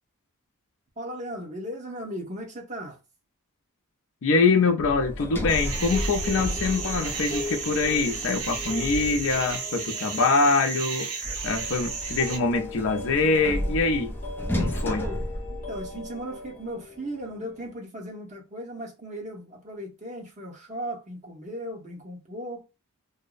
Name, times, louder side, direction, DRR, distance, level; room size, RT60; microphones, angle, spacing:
voice 1, 1.0-3.0 15.0-15.2 15.5-22.6, equal, 35° right, 0.9 m, -37 dB
voice 2, 4.2-14.1 14.6-15.0, left 4 dB, 60° left, 0.5 m, -24 dB
Sliding door, 4.8-9.6 11.2-16.2, equal, 10° left, 0.4 m, -33 dB
sound 1, 5.2-17.8, left 3 dB, 40° left, 0.8 m, -41 dB
sound 2, 5.5-12.4, right 5 dB, 70° right, 0.7 m, -34 dB
2.6 x 2.0 x 2.4 m
head